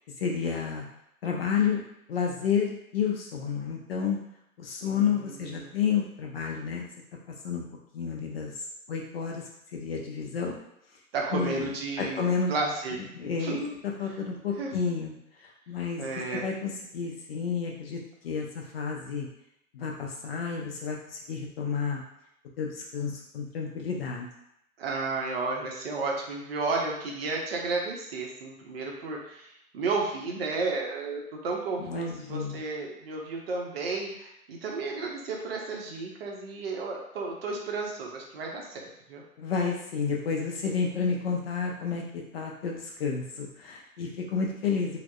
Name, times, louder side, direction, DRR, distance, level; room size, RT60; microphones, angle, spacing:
voice 1, 0.2-0.8 1.2-1.8 2.1-4.2 4.6-6.9 7.4-7.6 7.9-9.4 9.7-10.6 11.3-11.7 12.0-12.5 13.1-13.6 14.0-15.1 15.4-19.3 19.7-22.0 22.6-24.3 31.8-32.6 39.4-45.0, left 6 dB, 45° left, 0 dB, 0.5 m, -30 dB
voice 2, 4.8-5.7 11.1-13.0 13.4-13.8 14.6-14.7 16.0-16.5 24.8-39.2, right 3 dB, 45° right, -1 dB, 0.6 m, -33 dB
3.3 x 2.1 x 2.2 m, 0.78 s
figure-of-eight pair, 110°, 45 cm